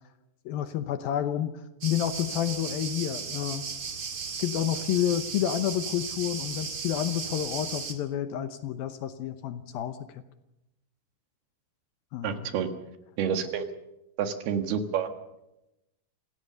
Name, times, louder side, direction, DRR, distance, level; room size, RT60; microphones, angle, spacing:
voice 1, 0.5-3.7 4.4-10.2 12.1-12.5, left 11 dB, 70° left, 10 dB, 2.5 m, -30 dB
sound 1, 1.8-7.9, right 5 dB, 40° right, 2.1 m, -36 dB
voice 2, 12.2-12.7 13.2-13.6 14.2-15.1, right 7 dB, 70° right, 7 dB, 3.4 m, -28 dB
26.5 x 16.5 x 6.9 m, 0.90 s
omnidirectional pair, 4.8 m